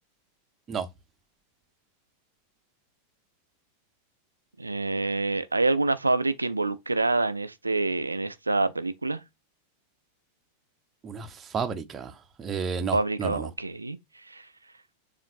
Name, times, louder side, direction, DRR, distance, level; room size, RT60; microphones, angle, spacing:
voice 1, 4.6-9.2 12.9-14.0 14.3-14.4, right 3 dB, 80° right, 0.3 m, -26 dB
voice 2, 11.0-13.5, right 5 dB, 25° right, 0.6 m, -32 dB
7.1 x 2.5 x 2.6 m
figure-of-eight pair, 90°, 0 cm